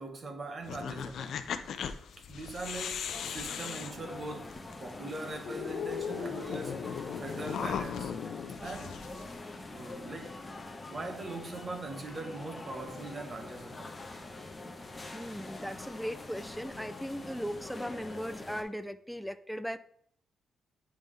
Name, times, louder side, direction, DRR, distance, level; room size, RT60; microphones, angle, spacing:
voice 1, 0.0-1.4 2.2-4.5 4.8-6.8 7.2-8.1 8.6-9.1 9.7-10.3 10.6-13.9, right 2 dB, 35° right, 1.1 m, -41 dB
sound 1, 0.6-4.7 5.1-5.2 5.4-9.6, left 7 dB, 70° left, 0.5 m, -38 dB
sound 2, 3.1-18.6, left 2 dB, 20° left, 0.8 m, -45 dB
voice 2, 15.1-19.8, equal, ahead, 0.4 m, -38 dB
9.2 x 3.6 x 3.3 m
cardioid pair, 120°, 0 cm